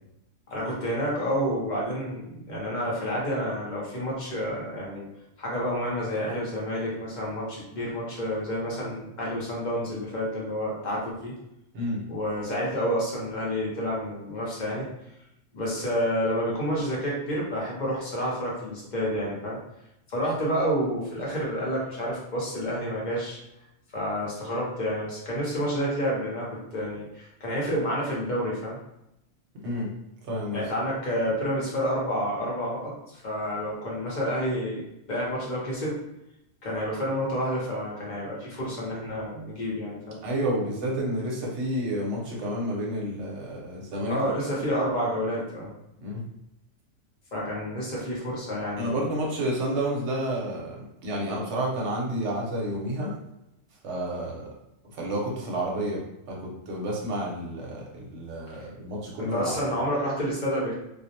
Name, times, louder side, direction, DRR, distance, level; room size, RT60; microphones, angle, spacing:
voice 1, 0.5-5.1 5.4-11.3 12.1-14.9 15.5-19.6 20.1-23.4 23.9-28.8 30.5-36.0 36.6-40.2 44.1-45.7 47.3-49.0 58.6-58.7 59.2-60.7, equal, 45° left, -5 dB, 0.7 m, -29 dB
voice 2, 30.3-30.6 40.2-44.2 46.0-46.2 48.8-53.1 53.8-54.5 54.9-56.0 56.3-59.6, right 1 dB, 65° right, -2 dB, 1.0 m, -30 dB
2.4 x 2.0 x 2.7 m, 0.85 s
omnidirectional pair, 1.3 m